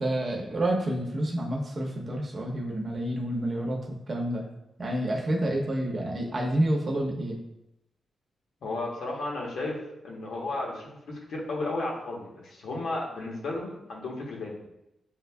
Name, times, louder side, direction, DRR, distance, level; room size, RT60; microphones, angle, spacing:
voice 1, 0.0-3.8 4.1-4.4 4.8-7.4, right 1 dB, 35° right, -1 dB, 0.8 m, -28 dB
voice 2, 8.6-9.8 10.0-14.7, left 2 dB, 75° left, -2 dB, 1.0 m, -33 dB
7.0 x 2.6 x 2.3 m, 0.86 s
cardioid pair, 110°, 0 cm